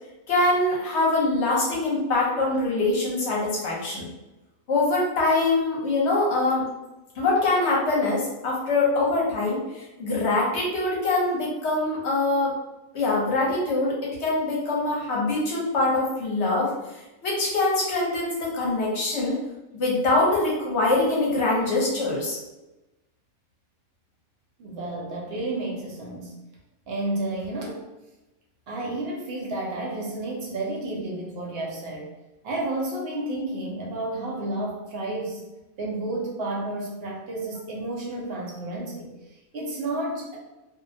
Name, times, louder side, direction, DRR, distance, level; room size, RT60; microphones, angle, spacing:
voice 1, 0.3-4.1 4.7-6.6 7.2-12.5 12.9-16.7 17.2-19.4 19.7-22.4, left 2 dB, 60° left, -4 dB, 1.0 m, -24 dB
voice 2, 24.6-26.4 26.9-27.8 28.7-32.1 32.4-35.4 35.8-40.4, right 2 dB, 60° right, -2 dB, 0.7 m, -31 dB
2.6 x 2.1 x 2.6 m, 1.0 s
omnidirectional pair, 1.5 m